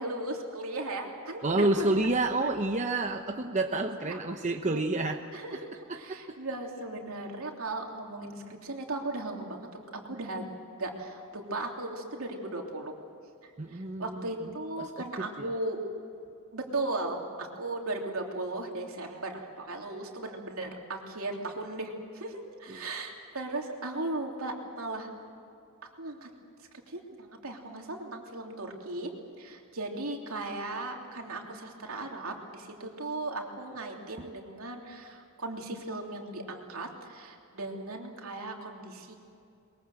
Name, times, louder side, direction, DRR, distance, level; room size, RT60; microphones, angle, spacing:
voice 1, 0.0-2.1 2.4-2.5 4.1-4.2 4.7-10.5 10.8-12.9 13.4-15.8 16.5-25.1 25.9-26.3 26.9-29.1 29.4-39.1, right 2 dB, 75° right, 1 dB, 3.1 m, -37 dB
voice 2, 1.4-5.2 5.9-6.4 13.6-14.3 14.8-15.5 22.7-22.9 34.2-34.3, right 2 dB, 35° right, 5 dB, 0.9 m, -29 dB
22.0 x 22.0 x 7.8 m, 2.5 s
head